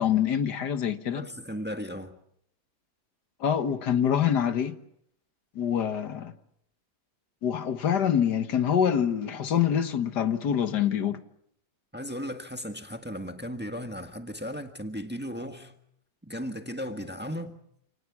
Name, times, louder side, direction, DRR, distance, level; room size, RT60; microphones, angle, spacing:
voice 1, 0.0-1.3 3.4-4.8 5.6-6.3 7.4-11.2, left 9 dB, 85° left, 1.9 m, -25 dB
voice 2, 1.1-2.2 11.9-15.8 16.2-17.6, equal, 5° right, 1.5 m, -36 dB
29.0 x 19.0 x 7.3 m
omnidirectional pair, 1.7 m